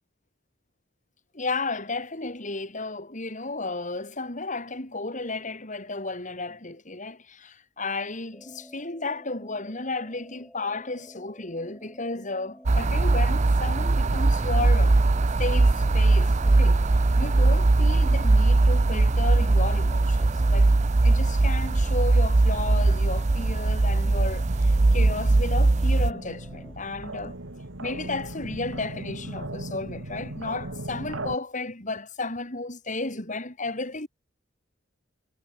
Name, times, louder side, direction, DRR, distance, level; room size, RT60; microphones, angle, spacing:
voice 1, 1.3-15.0 15.4-16.8 17.2-20.7 21.0-27.4 27.8-34.1, left 3 dB, 40° left, 4.3 m, -33 dB
sound 1, 8.3-26.7, equal, 5° left, 4.9 m, -51 dB
sound 2, 12.7-26.1, right 2 dB, 40° right, 0.6 m, -20 dB
sound 3, 24.5-31.4, right 2 dB, 85° right, 2.7 m, -38 dB
head